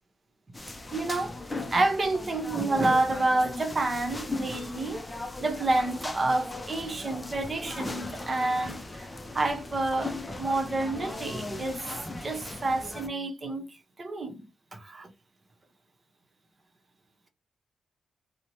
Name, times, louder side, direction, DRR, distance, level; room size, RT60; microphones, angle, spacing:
sound 1, 0.5-13.1, left 2 dB, 20° left, 0.5 m, -38 dB
voice 1, 0.9-1.4 1.7-5.0 5.4-9.1 9.3-11.9 12.2-15.1, right 2 dB, 40° right, 0.8 m, -29 dB
2.8 x 2.1 x 2.9 m
cardioid pair, 60°, 0 cm